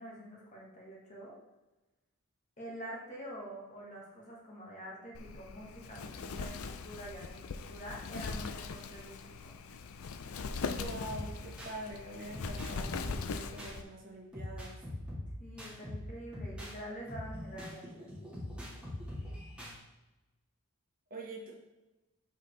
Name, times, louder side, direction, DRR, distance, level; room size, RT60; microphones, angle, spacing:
voice 1, 0.0-1.3 2.6-9.6 15.4-18.4, equal, 35° left, -3 dB, 1.7 m, -46 dB
Wind, 5.1-13.8, left 4 dB, 70° left, 0.5 m, -41 dB
voice 2, 10.7-14.8 21.1-21.5, right 1 dB, 40° right, -2 dB, 1.4 m, -45 dB
sound 1, 11.0-11.8 12.3-13.8 14.3-16.8 17.1-19.8, left 1 dB, 5° right, 1.7 m, -42 dB
7.4 x 4.6 x 3.3 m, 1.1 s
head